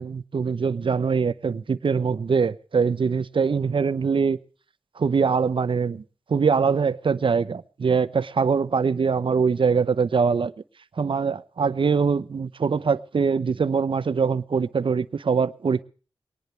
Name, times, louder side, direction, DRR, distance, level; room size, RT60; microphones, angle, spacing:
voice 1, 0.0-4.4 5.0-6.0 6.3-10.5 11.0-15.8, right 5 dB, 60° right, 15 dB, 0.7 m, -23 dB
21.0 x 19.0 x 3.3 m, 0.38 s
wide cardioid pair, 120°, 10 cm